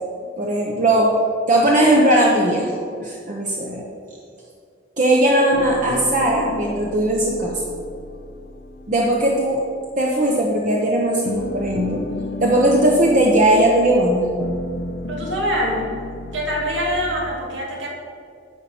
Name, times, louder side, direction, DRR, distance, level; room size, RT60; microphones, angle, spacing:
voice 1, 0.4-1.1 1.5-2.7 3.0-3.8 5.0-7.6 8.9-9.6 10.0-12.0 12.4-14.3, right 1 dB, 45° right, -2 dB, 0.9 m, -18 dB
sound 1, 5.5-10.8 11.1-17.3, left 2 dB, 60° left, 0.6 m, -33 dB
voice 2, 15.1-15.9 16.3-17.9, equal, 80° right, -2 dB, 2.2 m, -24 dB
9.8 x 4.3 x 7.0 m, 2.3 s
head